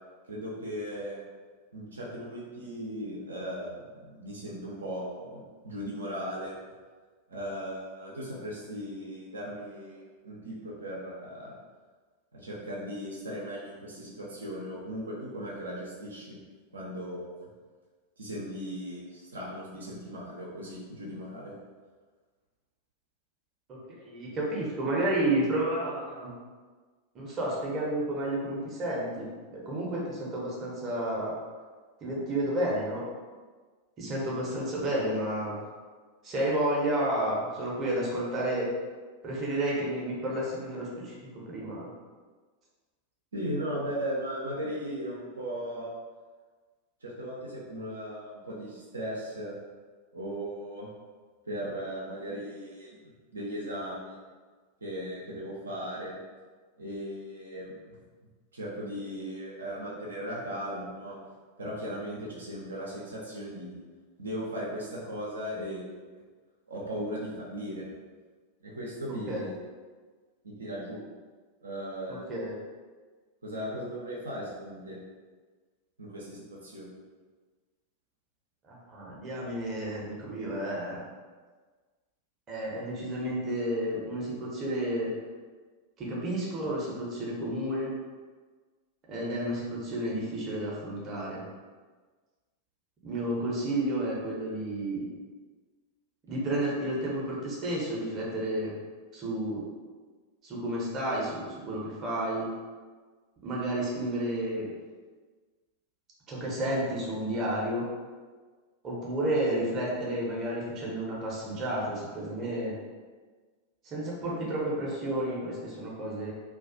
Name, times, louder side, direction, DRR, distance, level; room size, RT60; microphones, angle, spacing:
voice 1, 0.3-1.2 1.7-6.6 7.3-11.5 12.3-16.4 16.7-17.4 18.2-21.5 43.3-45.9 47.0-49.6 50.1-50.9 51.5-54.2 54.8-56.2 56.8-58.0 58.5-61.2 61.6-63.8 64.2-66.2 66.7-67.9 68.6-69.6 70.4-71.0 71.6-72.3 73.4-75.0 76.0-77.0, equal, 75° right, -5 dB, 0.5 m, -37 dB
voice 2, 23.7-26.3 27.1-31.3 32.0-33.1 34.0-35.6 36.2-38.7 39.2-41.9 69.3-69.5 72.3-72.5 78.6-81.0 82.5-85.1 86.0-87.9 89.1-91.4 93.0-95.1 96.3-98.8 99.1-99.7 100.4-102.5 103.4-104.7 106.3-107.9 108.8-112.8 113.8-116.3, right 1 dB, 30° right, -5 dB, 0.7 m, -31 dB
2.3 x 2.2 x 2.5 m, 1.4 s
figure-of-eight pair, 90°, 0 cm